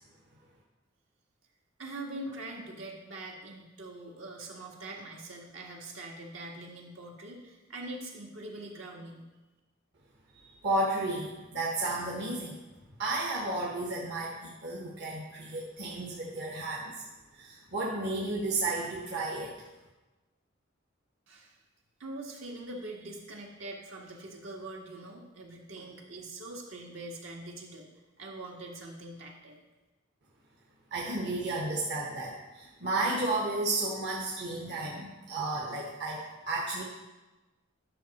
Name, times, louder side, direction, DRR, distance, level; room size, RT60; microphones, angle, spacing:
voice 1, 1.8-9.2 21.3-21.6 22.0-27.9 28.2-29.6, right 2 dB, 75° right, -1 dB, 1.7 m, -43 dB
voice 2, 10.3-12.6 13.0-17.0 17.3-19.6 30.9-36.8, right 2 dB, 60° right, -3 dB, 1.2 m, -33 dB
10.5 x 6.2 x 4.3 m, 1.1 s
head